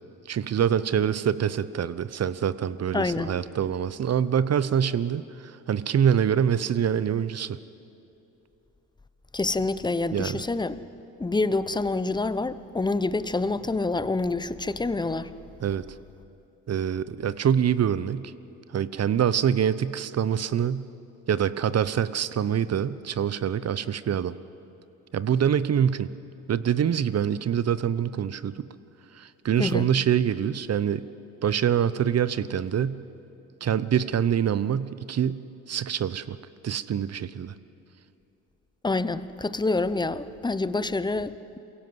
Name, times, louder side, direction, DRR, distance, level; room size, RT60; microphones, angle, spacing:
voice 1, 0.3-7.6 10.1-10.4 15.6-15.9 16.7-18.3 18.7-20.9 21.3-24.4 25.1-26.1 26.5-28.6 29.1-31.0 31.4-33.0 33.6-36.4 36.6-37.5, right 8 dB, 40° right, 0.8 m, -25 dB
voice 2, 2.9-3.4 9.3-10.8 11.2-15.3 29.6-29.9 38.8-41.6, left 3 dB, 10° left, 0.8 m, -27 dB
23.0 x 16.5 x 8.0 m
hypercardioid pair, 65°, 40 cm